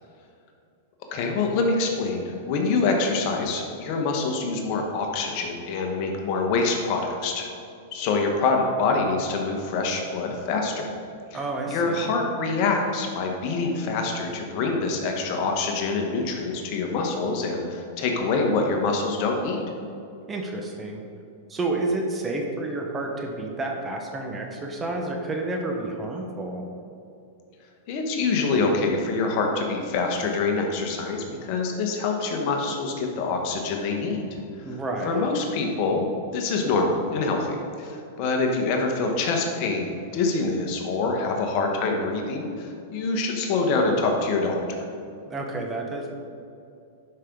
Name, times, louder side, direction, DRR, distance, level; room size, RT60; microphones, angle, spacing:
voice 1, 1.1-7.5 7.9-10.9 11.3-11.4 11.7-19.6 27.9-34.2 35.0-36.1 36.3-44.9, left 3 dB, 50° left, 2 dB, 1.3 m, -25 dB
voice 2, 11.3-12.1 20.3-21.0 21.5-26.6 34.6-35.2 45.3-46.1, right 2 dB, 20° right, 1 dB, 1.3 m, -30 dB
11.5 x 5.3 x 3.9 m, 2.6 s
hypercardioid pair, 115°, 0 cm